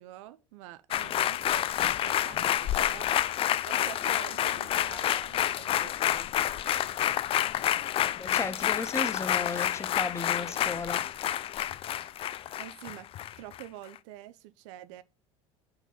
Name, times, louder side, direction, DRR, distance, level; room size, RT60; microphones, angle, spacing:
voice 1, 0.0-1.7 2.0-3.1 3.4-6.3 12.6-13.1 13.4-15.0, right 14 dB, 70° right, 0.4 m, -47 dB
sound 1, 0.9-13.6 14.0-14.1, left 12 dB, 35° left, 0.3 m, -29 dB
voice 2, 8.0-11.0, left 3 dB, 15° left, 0.8 m, -35 dB
6.0 x 3.8 x 5.4 m
hypercardioid pair, 80°, 17 cm